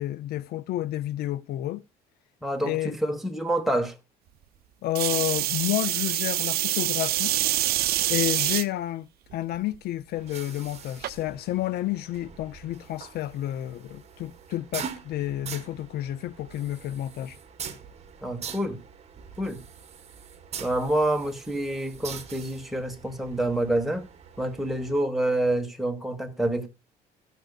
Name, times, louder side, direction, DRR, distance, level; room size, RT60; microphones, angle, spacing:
voice 1, 0.0-1.8 2.6-3.0 4.8-7.8 8.1-17.4, left 14 dB, 70° left, 0.4 m, -30 dB
voice 2, 2.4-4.0 18.2-18.8 19.4-19.6 20.6-24.1 24.4-26.7, right 1 dB, ahead, 1.5 m, -27 dB
untitled spray, 4.9-8.6 9.3-9.8 11.0-11.1, right 14 dB, 65° right, 0.6 m, -26 dB
sound 1, 10.1-25.0, right 7 dB, 40° right, 1.2 m, -43 dB
16.0 x 6.7 x 2.4 m
cardioid pair, 110°, 17 cm